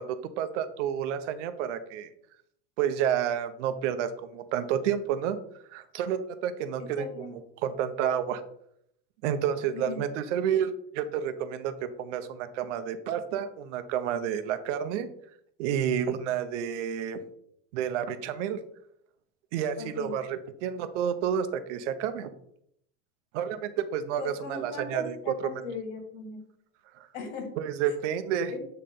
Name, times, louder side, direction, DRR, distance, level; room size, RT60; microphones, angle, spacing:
voice 1, 0.0-2.1 2.8-5.4 5.7-8.4 9.2-15.1 15.6-17.2 17.7-18.6 19.5-22.3 23.3-25.6 26.9-27.1 27.6-28.5, right 9 dB, 80° right, 10 dB, 0.8 m, -30 dB
voice 2, 6.8-7.3 9.7-10.0 19.8-20.1 24.2-26.4 27.1-27.5 27.9-28.0 28.5-28.6, left 4 dB, 70° left, 3 dB, 2.2 m, -38 dB
8.6 x 3.3 x 3.8 m, 0.70 s
supercardioid pair, 135°, 36 cm